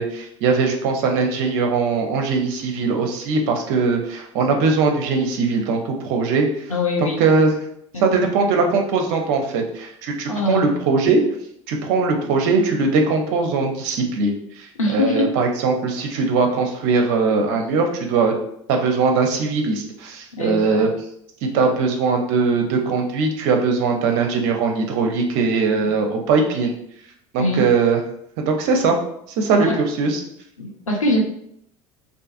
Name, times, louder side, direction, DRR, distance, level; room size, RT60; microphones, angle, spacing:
voice 1, 0.0-6.5 7.0-7.5 8.0-11.2 11.7-18.4 18.7-20.9 21.5-26.7 27.3-28.0 28.4-29.0 29.4-29.7 30.0-30.2, right 4 dB, 55° right, 3 dB, 0.6 m, -20 dB
voice 2, 6.7-7.2 7.9-8.1 10.3-10.7 14.8-15.4 20.3-20.9 27.4-27.6 29.5-29.8 30.6-31.2, left 2 dB, 85° left, 0 dB, 0.5 m, -23 dB
2.6 x 2.3 x 2.5 m, 0.70 s
figure-of-eight pair, 70°, 17 cm